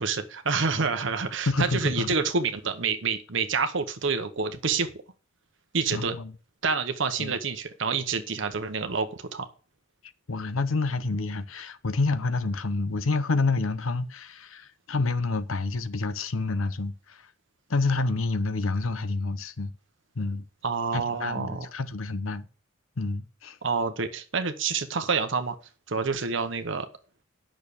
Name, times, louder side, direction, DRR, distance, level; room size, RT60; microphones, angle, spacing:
voice 1, 0.0-4.9 5.7-6.1 6.6-9.5 20.6-21.7 23.6-25.5 25.9-26.9, right 5 dB, 65° right, 0.9 m, -28 dB
voice 2, 1.5-2.1 5.9-6.3 7.2-7.4 10.3-17.3 17.7-19.7 20.2-20.4 20.9-22.5 23.0-23.6, left 3 dB, 80° left, 0.8 m, -28 dB
8.9 x 6.4 x 6.9 m
head